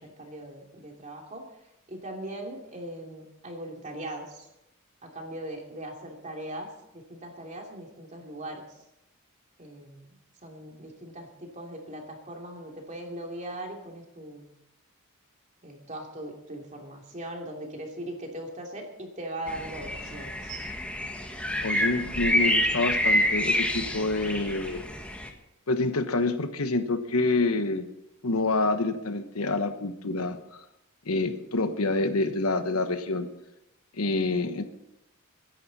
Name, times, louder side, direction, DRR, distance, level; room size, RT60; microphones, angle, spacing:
voice 1, 0.0-1.4 1.9-4.5 5.0-8.8 9.6-10.2 10.4-14.5 15.6-20.7 22.0-22.3, right 1 dB, 35° right, 1 dB, 2.9 m, -40 dB
sound 1, 19.5-25.3, left 1 dB, 5° left, 1.5 m, -27 dB
voice 2, 21.6-24.8 25.7-27.9 28.2-30.6 31.0-33.3 33.9-34.6, left 2 dB, 85° left, 9 dB, 1.2 m, -27 dB
23.0 x 11.0 x 4.2 m, 0.86 s
head